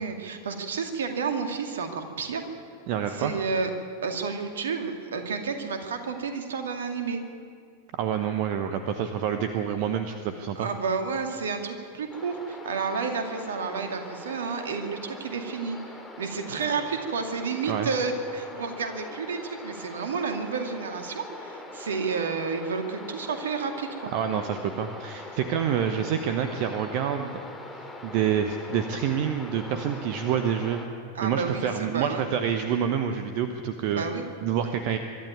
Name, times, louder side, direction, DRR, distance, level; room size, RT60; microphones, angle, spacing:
voice 1, 0.0-2.4 3.1-3.7 4.0-7.2 10.6-15.8 16.2-24.1 31.1-32.2 33.9-34.2, right 5 dB, 65° right, 6 dB, 2.3 m, -31 dB
voice 2, 2.9-3.3 7.9-10.7 17.7-17.9 24.1-27.4 27.8-30.8 31.2-34.0 34.4-35.0, right 8 dB, 45° right, 8 dB, 1.1 m, -27 dB
sound 1, 12.1-30.9, left 2 dB, 5° left, 2.8 m, -42 dB
24.0 x 12.0 x 9.5 m, 2.3 s
figure-of-eight pair, 90°, 0 cm